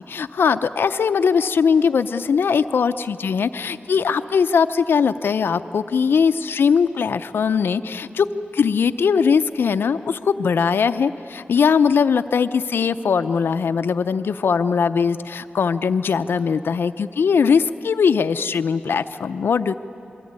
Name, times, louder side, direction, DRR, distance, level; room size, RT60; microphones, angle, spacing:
voice 1, 0.1-8.3 8.5-19.7, left 6 dB, 80° left, 11 dB, 0.6 m, -20 dB
27.5 x 21.5 x 9.6 m, 2.9 s
wide cardioid pair, 170°, 4 cm